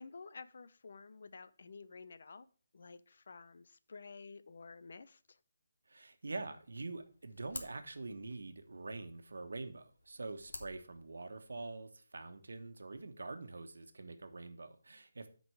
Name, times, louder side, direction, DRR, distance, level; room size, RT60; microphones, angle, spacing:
voice 1, 0.0-2.5 2.7-5.4, left 4 dB, 50° left, 14 dB, 0.5 m, -52 dB
voice 2, 5.9-15.3, right 3 dB, 85° right, 7 dB, 1.3 m, -45 dB
sound 1, 6.7-11.8, left 2 dB, 90° left, 1.5 m, -53 dB
9.3 x 5.3 x 4.7 m, 0.39 s
hypercardioid pair, 175°, 0 cm